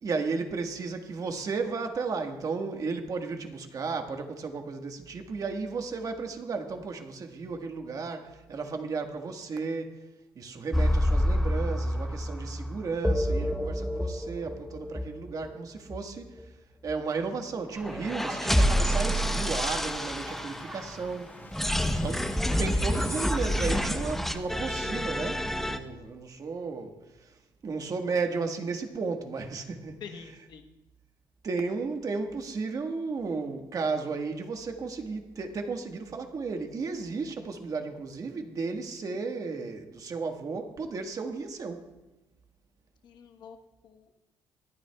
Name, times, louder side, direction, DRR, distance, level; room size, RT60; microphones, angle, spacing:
voice 1, 0.0-10.0 10.3-16.6 16.8-21.7 22.0-30.0 31.4-41.9, right 4 dB, 45° right, 4 dB, 1.5 m, -34 dB
sound 1, 10.7-15.5 15.9-16.0 16.4-16.5 16.9-17.0 17.8-21.1 21.5-25.8, equal, 5° left, 0.9 m, -28 dB
sound 2, 17.7-23.0, right 2 dB, 25° right, 2.4 m, -45 dB
Waves surf, 18.2-25.0, left 2 dB, 25° left, 2.6 m, -49 dB
voice 2, 21.6-22.0 25.8-25.9 30.0-30.8 43.0-43.6 43.8-44.1, left 6 dB, 65° left, 3 dB, 1.1 m, -46 dB
25.5 x 9.2 x 2.3 m, 1.0 s
cardioid pair, 85°, 8 cm